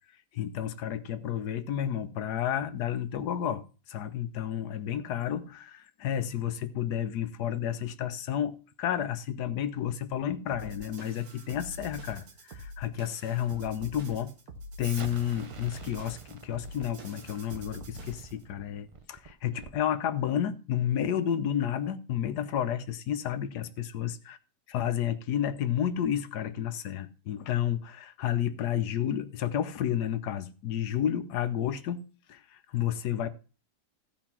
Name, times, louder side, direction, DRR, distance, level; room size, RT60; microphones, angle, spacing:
voice 1, 0.3-14.3 14.8-24.4 24.7-32.0 32.3-33.3, left 10 dB, 80° left, 1.4 m, -31 dB
sound 1, 10.5-18.4, equal, 70° right, 1.9 m, -45 dB
Explosion, 14.8-19.9, right 5 dB, 45° right, 0.4 m, -47 dB
14.5 x 5.0 x 5.9 m
omnidirectional pair, 1.7 m